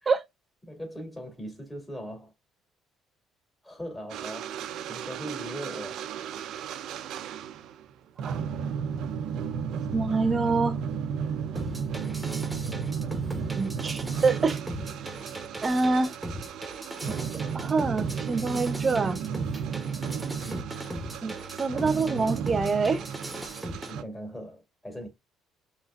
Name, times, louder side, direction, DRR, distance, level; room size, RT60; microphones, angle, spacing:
voice 1, 0.6-2.3 3.6-6.5 11.2-11.5 20.3-20.7 23.9-25.1, equal, 15° left, 2.2 m, -40 dB
sound 1, 4.1-7.8 8.2-24.0, right 7 dB, 70° right, 0.5 m, -34 dB
voice 2, 9.9-10.8 13.5-14.6 15.6-16.1 17.1-17.2 17.5-19.2 21.2-23.0, right 4 dB, 35° right, 0.9 m, -26 dB
sound 2, 11.6-23.9, right 1 dB, 10° right, 1.1 m, -38 dB
5.6 x 3.2 x 2.3 m
supercardioid pair, 65°, 0 cm